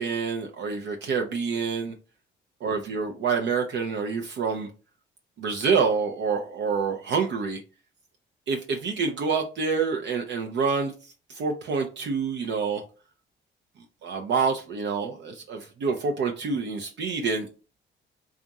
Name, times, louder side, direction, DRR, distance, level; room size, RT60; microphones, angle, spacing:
voice 1, 0.0-1.9 2.6-4.7 5.4-7.6 8.5-12.8 14.0-17.5, right 5 dB, 65° right, 3 dB, 0.6 m, -27 dB
3.6 x 2.4 x 4.0 m, 0.35 s
cardioid pair, 90°, 20 cm